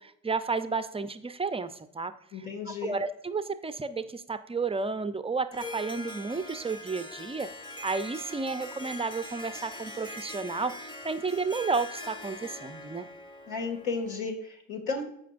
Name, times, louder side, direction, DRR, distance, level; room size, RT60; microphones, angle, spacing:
voice 1, 0.0-2.1 2.7-7.5 7.8-13.0, right 4 dB, 15° right, 10 dB, 0.6 m, -32 dB
voice 2, 2.3-3.0 13.5-15.0, left 4 dB, 65° left, 2 dB, 2.5 m, -33 dB
Harp, 5.5-14.3, left 2 dB, 10° left, 1.2 m, -42 dB
14.5 x 5.1 x 2.6 m, 0.70 s
hypercardioid pair, 65°, 38 cm